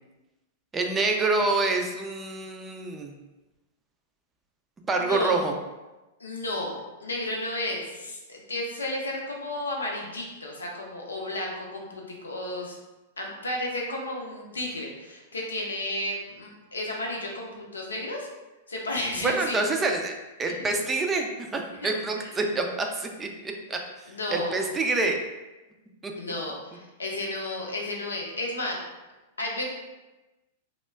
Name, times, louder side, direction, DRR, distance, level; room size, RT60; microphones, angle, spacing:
voice 1, 0.7-3.1 4.9-5.5 19.2-20.1 20.4-23.8 24.3-25.2 26.0-26.1, right 3 dB, 20° right, 3 dB, 0.4 m, -27 dB
voice 2, 5.0-5.4 6.2-12.8 13.2-18.3 18.7-19.6 20.5-20.7 21.8-21.9 22.2-22.3 24.1-24.6 26.1-28.8 29.4-29.7, left 1 dB, 85° left, -1 dB, 0.6 m, -33 dB
2.2 x 2.1 x 3.4 m, 1.1 s
hypercardioid pair, 105°, 0 cm